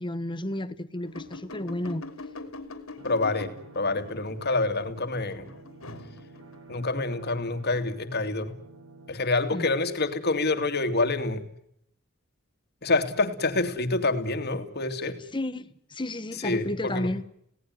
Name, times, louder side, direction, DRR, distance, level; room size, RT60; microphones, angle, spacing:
voice 1, 0.0-2.0 9.5-9.7 15.3-17.2, left 1 dB, 25° left, 1.3 m, -32 dB
sound 1, 1.0-6.6, left 2 dB, 80° left, 3.3 m, -43 dB
voice 2, 3.0-5.5 6.7-8.5 9.1-11.4 12.8-15.2 16.4-17.1, left 3 dB, 50° left, 2.7 m, -27 dB
sound 2, 3.0-9.1, right 2 dB, 75° right, 5.0 m, -50 dB
27.5 x 18.0 x 9.6 m
head